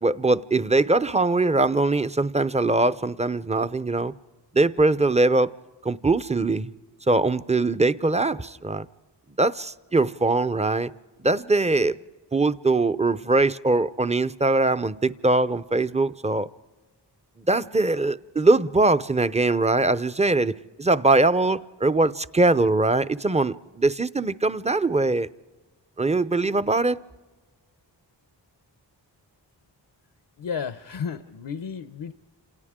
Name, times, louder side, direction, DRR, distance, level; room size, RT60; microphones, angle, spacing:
voice 1, 0.0-4.1 4.5-5.5 5.8-6.7 7.1-8.9 9.4-10.9 11.2-12.0 12.3-16.5 17.5-25.3 26.0-27.0, right 2 dB, 15° right, 0.6 m, -22 dB
voice 2, 30.4-32.1, left 6 dB, 70° left, 0.8 m, -32 dB
30.0 x 27.5 x 3.7 m
cardioid pair, 45°, 44 cm